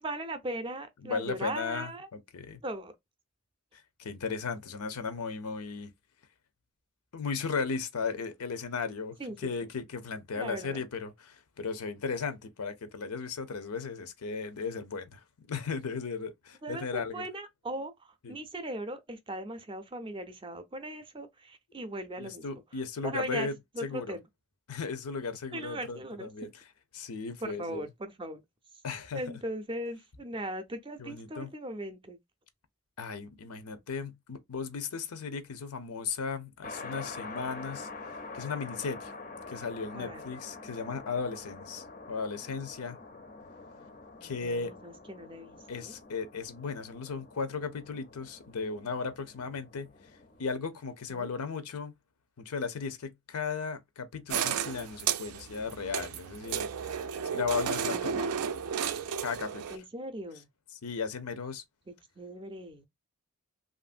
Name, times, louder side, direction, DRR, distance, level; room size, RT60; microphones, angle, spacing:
voice 1, 0.0-2.1 2.6-2.9 9.2-9.5 10.4-10.8 16.6-16.9 17.1-22.4 23.0-23.5 23.7-24.2 25.5-26.5 27.4-28.4 29.1-32.2 39.9-40.3 44.2-45.9 51.1-51.3 57.9-58.1 59.7-60.5 61.9-62.9, right 1 dB, 20° right, 0.4 m, -39 dB
voice 2, 1.0-2.6 3.7-5.9 7.1-17.3 18.2-18.4 22.2-24.2 24.7-26.6 26.9-27.9 28.8-29.2 31.0-31.5 33.0-37.9 38.3-39.1 39.5-43.0 44.2-44.7 45.7-49.9 50.4-51.9 52.4-56.9 57.2-58.3 59.2-59.8 60.7-61.6, left 5 dB, 90° left, 0.6 m, -36 dB
sound 1, 36.6-50.6, left 3 dB, 40° left, 0.5 m, -46 dB
sound 2, 54.3-59.8, right 7 dB, 85° right, 0.4 m, -33 dB
2.9 x 2.5 x 2.4 m
head